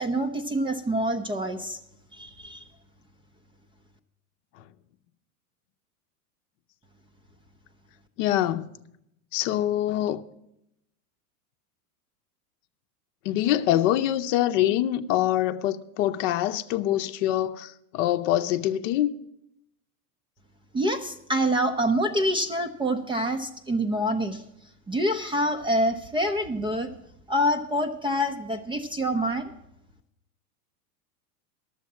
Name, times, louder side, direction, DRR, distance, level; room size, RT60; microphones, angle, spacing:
voice 1, 0.0-1.8 2.1-2.6 20.7-24.4 24.9-26.9 27.3-29.5, equal, 10° right, 0.5 m, -26 dB
voice 2, 8.2-8.7 9.3-10.2 13.2-19.1, left 13 dB, 55° left, 0.7 m, -24 dB
11.5 x 7.4 x 8.5 m
hypercardioid pair, 115°, 46 cm